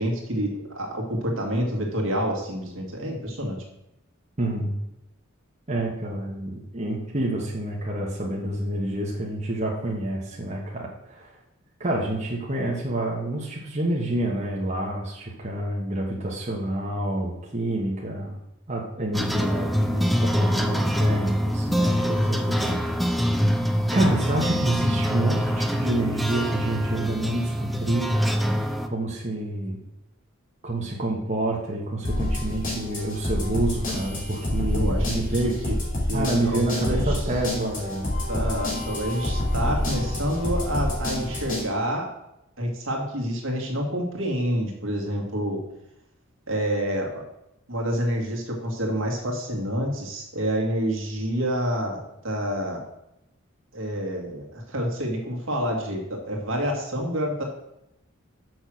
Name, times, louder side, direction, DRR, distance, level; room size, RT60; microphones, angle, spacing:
voice 1, 0.0-3.6 34.6-35.2 35.4-35.8 36.1-37.2 38.3-42.1 42.6-45.6 46.5-47.2 47.7-52.8 53.7-57.4, equal, 65° right, 1 dB, 2.1 m, -28 dB
voice 2, 4.4-4.7 5.7-11.4 11.8-18.3 18.7-23.0 23.9-29.8 30.6-35.6 36.1-38.1, right 1 dB, 35° right, -3 dB, 1.3 m, -28 dB
sound 1, 19.1-28.9, equal, ahead, 0.5 m, -24 dB
sound 2, 32.0-41.6, left 1 dB, 40° left, 2.7 m, -28 dB
6.3 x 6.3 x 6.2 m, 0.87 s
head